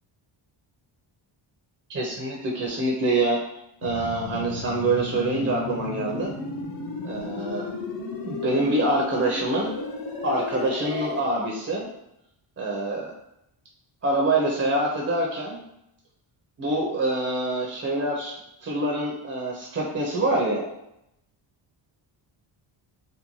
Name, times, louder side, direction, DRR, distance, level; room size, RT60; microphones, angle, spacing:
voice 1, 1.9-3.4 3.8-6.4 7.0-7.7 8.2-9.7 10.2-11.9 12.6-13.1 14.0-15.6 16.6-18.3 18.6-20.7, right 2 dB, 30° right, -2 dB, 0.5 m, -25 dB
sound 1, 3.8-11.2, left 3 dB, 50° left, 0.5 m, -34 dB
2.7 x 2.1 x 2.9 m, 0.82 s
cardioid pair, 115°, 48 cm